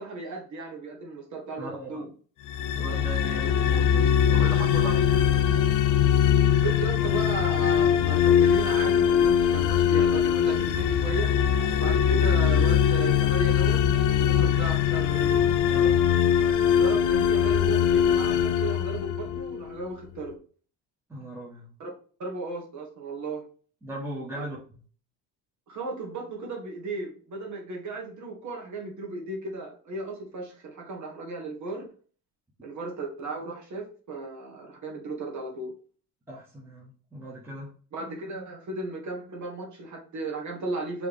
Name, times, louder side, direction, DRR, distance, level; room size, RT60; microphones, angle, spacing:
voice 1, 0.0-2.1 2.8-3.0 6.6-11.3 11.8-15.5 16.7-20.4 21.8-21.9 22.2-23.4 24.3-24.4 25.7-31.9 32.6-35.7 37.9-41.1, right 3 dB, 50° right, 0 dB, 1.5 m, -35 dB
voice 2, 1.6-2.0 2.7-5.7 15.7-16.0 21.1-21.7 23.8-24.8 36.3-37.7, right 1 dB, 5° right, -4 dB, 1.3 m, -38 dB
sound 1, 2.5-19.6, left 9 dB, 55° left, 0.6 m, -22 dB
4.6 x 3.1 x 3.6 m, 0.42 s
cardioid pair, 115°, 38 cm